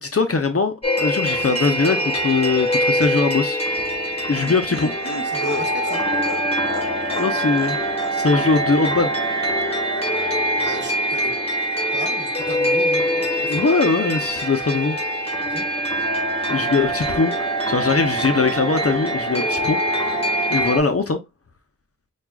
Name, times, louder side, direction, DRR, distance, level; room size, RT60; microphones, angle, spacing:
voice 1, 0.0-3.6 4.3-4.9 7.2-9.1 13.5-15.0 16.5-21.2, left 4 dB, 50° left, 0.6 m, -21 dB
sound 1, 0.8-20.8, right 1 dB, 20° left, 1.4 m, -23 dB
Laughter, 3.7-8.2 8.5-8.6, left 4 dB, 85° left, 0.7 m, -34 dB
voice 2, 5.2-6.0 10.6-11.3 11.9-13.6 15.5-15.6, right 2 dB, 35° right, 1.0 m, -36 dB
5.9 x 2.4 x 2.3 m
wide cardioid pair, 50°, 31 cm